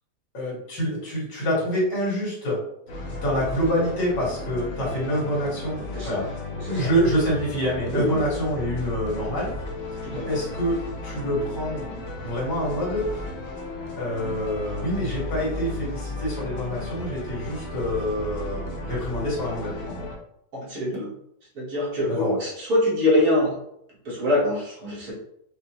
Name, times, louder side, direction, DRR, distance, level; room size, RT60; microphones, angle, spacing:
voice 1, 0.3-2.6 3.1-6.3 6.5-9.5 10.1-11.8 12.2-13.1 14.0-20.0 22.1-22.4, equal, 85° left, -5 dB, 2.2 m, -26 dB
sound 1, 2.9-20.2, left 2 dB, 60° left, 1.0 m, -34 dB
voice 2, 5.9-6.3 6.6-6.9 7.9-8.2 10.0-10.4 20.5-21.1 21.5-23.6 24.0-25.1, left 1 dB, 60° right, -6 dB, 1.8 m, -24 dB
5.1 x 2.2 x 2.9 m, 0.74 s
omnidirectional pair, 1.9 m